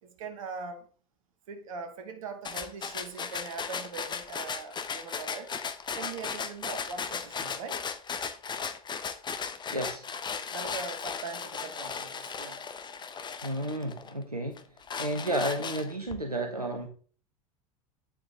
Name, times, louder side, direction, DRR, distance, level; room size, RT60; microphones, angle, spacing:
voice 1, 0.0-0.9 1.5-5.5 5.9-7.8 10.5-12.6 15.1-15.3, right 4 dB, 65° right, 1.7 m, -41 dB
sound 1, 2.5-14.1 14.6-16.1, left 6 dB, 25° left, 1.1 m, -36 dB
voice 2, 9.7-10.0 13.4-14.6 15.0-16.9, right 1 dB, 90° right, 1.0 m, -32 dB
9.0 x 7.3 x 3.7 m
figure-of-eight pair, 70°, 19 cm